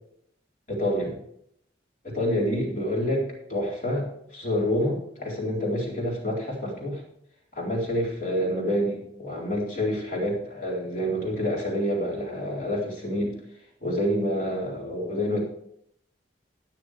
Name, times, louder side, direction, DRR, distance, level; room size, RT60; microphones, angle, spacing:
voice 1, 0.7-1.2 2.0-7.0 7.5-13.4 13.8-15.4, equal, 45° left, -3 dB, 4.0 m, -27 dB
13.5 x 9.6 x 3.5 m, 0.70 s
head